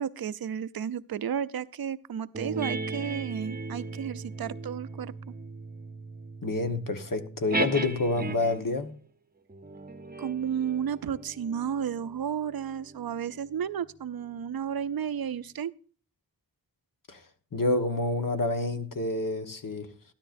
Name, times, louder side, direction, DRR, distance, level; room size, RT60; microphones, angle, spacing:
voice 1, 0.0-5.1 10.2-15.7, right 8 dB, 80° right, 0.6 m, -32 dB
sound 1, 2.3-8.7 9.5-14.4, right 3 dB, 25° right, 0.7 m, -38 dB
voice 2, 6.4-8.9 17.1-17.2 17.5-19.9, left 2 dB, 65° left, 1.3 m, -28 dB
13.0 x 12.0 x 2.6 m
wide cardioid pair, 80°, 35 cm